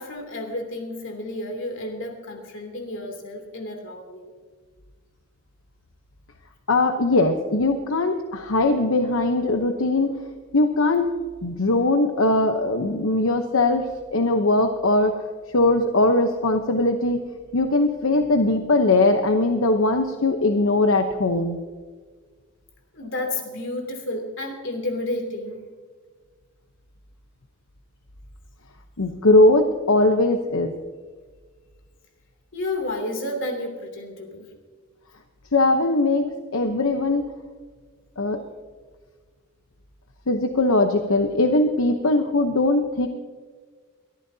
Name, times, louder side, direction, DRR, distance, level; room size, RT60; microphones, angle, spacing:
voice 1, 0.0-4.3 22.9-25.7 32.5-34.5, left 1 dB, 65° left, 3 dB, 2.9 m, -31 dB
voice 2, 6.7-10.2 10.5-11.1 11.4-15.1 15.5-17.2 17.5-21.6 29.0-30.7 35.5-37.3 38.2-38.4 40.3-43.1, left 2 dB, 85° left, 5 dB, 0.9 m, -20 dB
22.5 x 14.0 x 2.8 m, 1.5 s
head